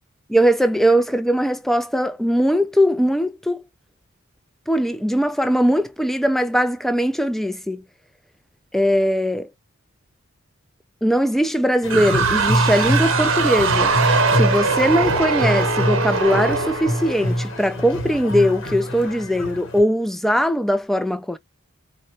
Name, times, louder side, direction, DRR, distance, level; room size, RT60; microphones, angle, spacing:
voice 1, 0.3-3.6 4.7-7.8 8.7-9.5 11.0-13.9 14.3-21.4, equal, ahead, 0.3 m, -20 dB
sound 1, 11.8-19.8, equal, 60° left, 1.0 m, -25 dB
sound 2, 11.9-17.7, right 4 dB, 65° right, 0.9 m, -21 dB
4.2 x 2.2 x 2.9 m
head